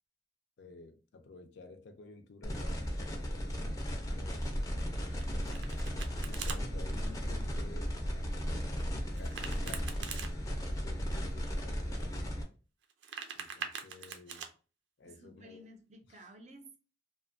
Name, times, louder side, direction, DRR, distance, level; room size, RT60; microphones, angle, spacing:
voice 1, 0.6-4.4 6.2-8.6 9.1-10.1 10.8-12.4 13.3-14.5 15.0-15.6 16.1-16.3, left 3 dB, 75° left, 0.4 m, -53 dB
sound 1, 2.4-12.4, equal, 20° left, 0.4 m, -35 dB
voice 2, 4.9-5.5 11.0-11.3 15.0-16.8, right 1 dB, 40° right, 0.5 m, -55 dB
Domestic sounds home sounds, 5.2-6.6 9.2-10.3 12.8-14.5, right 6 dB, 90° right, 0.4 m, -43 dB
2.6 x 2.1 x 2.5 m
head